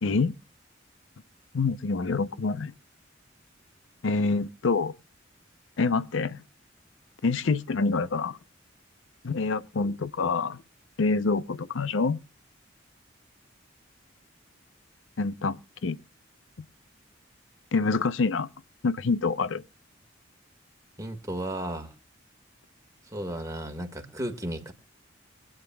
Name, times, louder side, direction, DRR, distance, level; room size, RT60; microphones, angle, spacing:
voice 1, 0.0-0.4 1.5-2.7 4.0-4.9 5.8-6.4 7.2-8.4 9.2-10.6 11.0-12.2 15.2-16.0 17.7-18.5 18.8-19.6, left 4 dB, 85° left, 0.6 m, -26 dB
voice 2, 21.0-21.9 23.1-24.7, right 1 dB, 15° right, 1.7 m, -34 dB
25.0 x 9.0 x 2.3 m
head